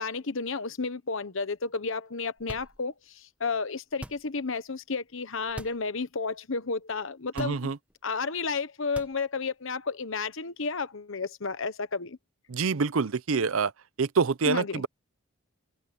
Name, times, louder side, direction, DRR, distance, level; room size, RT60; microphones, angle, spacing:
voice 1, 0.0-7.7 8.0-12.2 14.5-14.8, left 4 dB, 70° left, 1.1 m, -32 dB
sound 1, 2.4-3.1 3.9-4.5 5.4-5.9 6.3-6.4 7.3-8.0 8.8-9.5, equal, 5° right, 1.2 m, -44 dB
voice 2, 7.4-7.8 12.5-13.7 14.0-14.9, right 5 dB, 80° right, 0.6 m, -26 dB
head